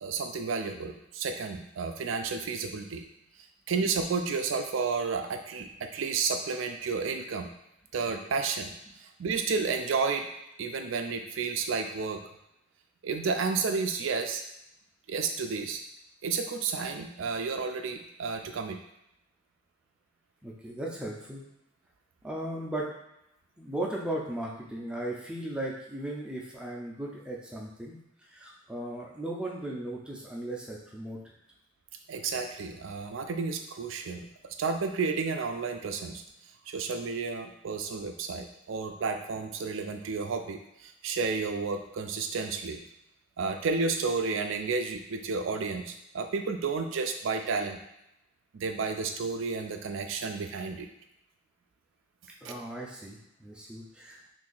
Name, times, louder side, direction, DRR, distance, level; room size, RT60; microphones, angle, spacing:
voice 1, 0.0-3.0 3.7-7.5 7.9-8.7 9.0-10.3 10.6-12.2 13.0-14.4 15.1-15.8 16.2-18.8 32.1-36.2 36.7-42.8 43.4-47.8 48.5-50.9 52.4-52.5, right 4 dB, 65° right, 5 dB, 0.4 m, -31 dB
voice 2, 20.4-21.4 22.2-22.9 23.6-28.0 28.3-31.2 52.4-54.3, right 1 dB, 5° right, -3 dB, 0.5 m, -37 dB
2.9 x 2.5 x 3.8 m, 0.85 s
head